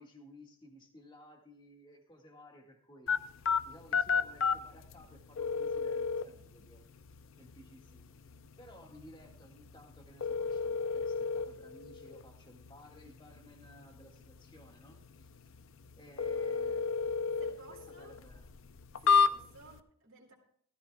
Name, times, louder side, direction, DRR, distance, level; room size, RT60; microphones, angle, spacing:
voice 1, 0.0-3.1 3.7-6.8 7.4-8.1 8.6-15.4 16.0-16.9 17.7-18.5 19.0-19.3, equal, 20° left, 2 dB, 1.8 m, -56 dB
sound 1, 3.1-19.8, left 5 dB, 60° left, 0.6 m, -34 dB
voice 2, 17.4-18.2 19.1-20.3, right 3 dB, 60° right, -2 dB, 2.4 m, -56 dB
17.5 x 13.5 x 2.3 m, 0.64 s
head